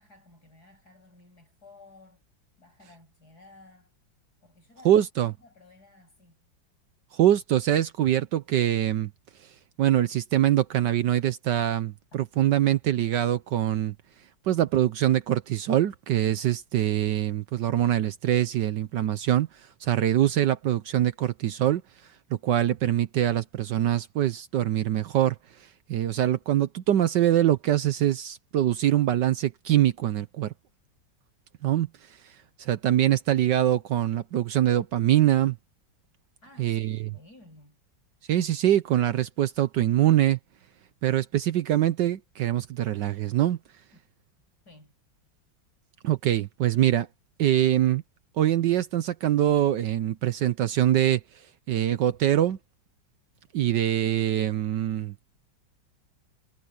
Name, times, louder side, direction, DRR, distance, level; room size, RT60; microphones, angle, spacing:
voice 1, 0.0-2.3 2.6-3.9 4.4-6.5 36.4-37.8 43.9-44.0 44.6-45.0, left 2 dB, 50° left, 8.6 m, -54 dB
voice 2, 4.8-5.3 7.1-30.5 31.6-35.6 36.6-37.1 38.2-40.4 41.0-43.8 46.0-47.1 47.4-48.0 48.3-52.6 53.5-55.3, right 12 dB, 70° right, 1.3 m, -24 dB
omnidirectional pair, 2.2 m